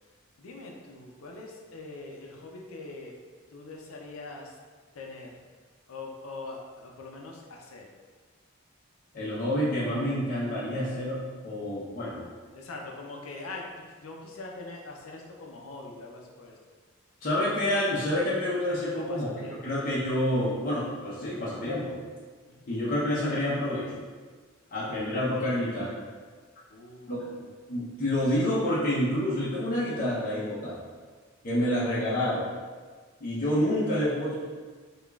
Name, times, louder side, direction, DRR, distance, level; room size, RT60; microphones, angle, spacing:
voice 1, 0.4-3.1 3.5-4.6 4.9-5.4 5.9-7.8 12.5-13.7 14.0-16.5 18.9-20.0 22.5-22.7 24.7-25.0 26.7-27.5, left 3 dB, 90° left, 0 dB, 0.5 m, -43 dB
voice 2, 9.1-12.2 17.2-19.3 19.6-22.0 22.7-24.0 24.7-26.1 27.1-27.4 27.7-30.8 31.4-32.5 33.2-34.3, left 1 dB, 45° left, -8 dB, 0.6 m, -28 dB
4.8 x 2.4 x 2.3 m, 1.5 s
head